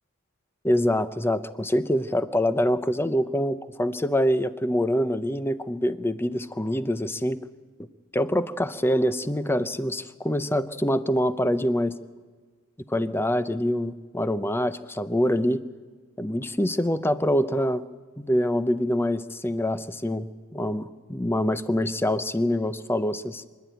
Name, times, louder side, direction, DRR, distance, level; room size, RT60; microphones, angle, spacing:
voice 1, 0.6-7.4 8.1-12.0 12.9-15.6 16.2-17.8 18.2-23.4, equal, 10° left, 13 dB, 0.6 m, -25 dB
25.0 x 11.5 x 9.2 m, 1.5 s
head